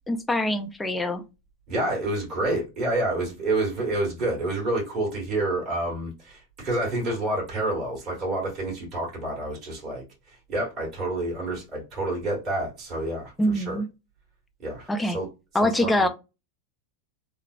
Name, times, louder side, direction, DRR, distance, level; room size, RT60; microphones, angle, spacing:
voice 1, 0.1-1.2 13.4-13.9 14.9-15.2 15.5-16.1, left 1 dB, 10° left, 0.4 m, -24 dB
voice 2, 1.7-13.8 14.6-15.3 15.5-16.1, right 2 dB, 40° right, 1.6 m, -29 dB
3.1 x 2.0 x 2.4 m
hypercardioid pair, 100°, 0 cm